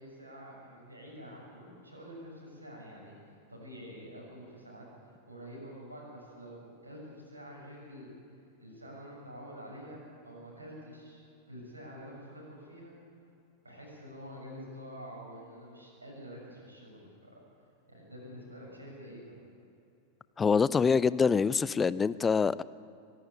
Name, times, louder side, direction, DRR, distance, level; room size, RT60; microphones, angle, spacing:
voice 1, 0.0-3.1 3.5-8.1 8.6-12.9 13.6-17.3 17.9-19.4, equal, 80° right, -3 dB, 6.7 m, -47 dB
voice 2, 20.4-22.6, left 5 dB, 15° left, 19 dB, 0.5 m, -25 dB
24.0 x 11.5 x 9.7 m, 2.6 s
figure-of-eight pair, 90°, 0 cm